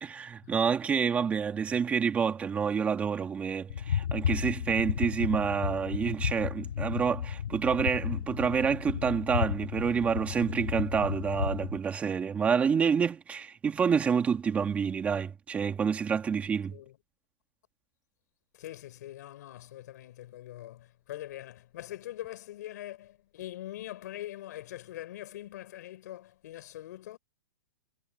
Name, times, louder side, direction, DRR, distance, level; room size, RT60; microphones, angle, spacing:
voice 1, 0.0-16.8, right 6 dB, 10° right, 2.3 m, -28 dB
sound 1, 3.7-11.8, left 9 dB, 85° left, 3.1 m, -33 dB
voice 2, 18.5-27.2, left 14 dB, 55° left, 4.4 m, -43 dB
hypercardioid pair, 165°, 11 cm